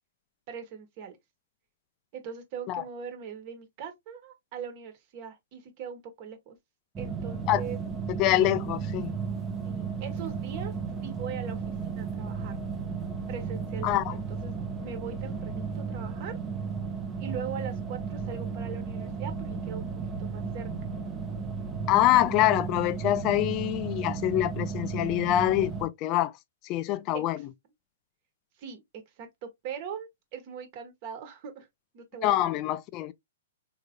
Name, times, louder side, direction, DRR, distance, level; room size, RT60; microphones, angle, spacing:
voice 1, 0.5-1.1 2.1-6.6 7.0-7.8 9.6-10.7 11.0-12.6 13.3-16.4 17.2-20.7 27.1-27.2 28.6-31.7 31.9-32.5, right 7 dB, 40° right, 1.3 m, -41 dB
sound 1, 7.0-25.9, right 5 dB, 20° right, 0.7 m, -34 dB
voice 2, 8.1-9.2 13.8-14.1 21.9-26.3 26.6-27.4 32.2-33.1, left 14 dB, 35° left, 0.4 m, -25 dB
3.7 x 3.0 x 2.2 m
hypercardioid pair, 125°, 0 cm